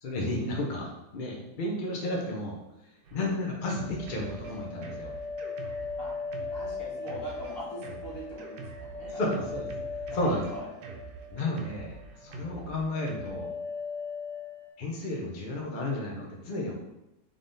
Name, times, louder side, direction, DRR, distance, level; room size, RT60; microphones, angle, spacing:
voice 1, 0.0-2.6 3.1-5.2 9.1-9.7 10.1-10.4 11.3-13.5 14.8-16.7, left 1 dB, 60° left, -1 dB, 0.5 m, -32 dB
Drum kit, 3.0-13.3, right 4 dB, 80° right, 1.2 m, -45 dB
sound 1, 3.6-11.8 12.1-12.6 12.9-14.7, left 4 dB, 55° right, 1.1 m, -39 dB
voice 2, 6.5-9.2 10.1-10.7, right 2 dB, 40° left, -6 dB, 1.7 m, -40 dB
3.6 x 3.6 x 3.9 m, 0.91 s
omnidirectional pair, 1.7 m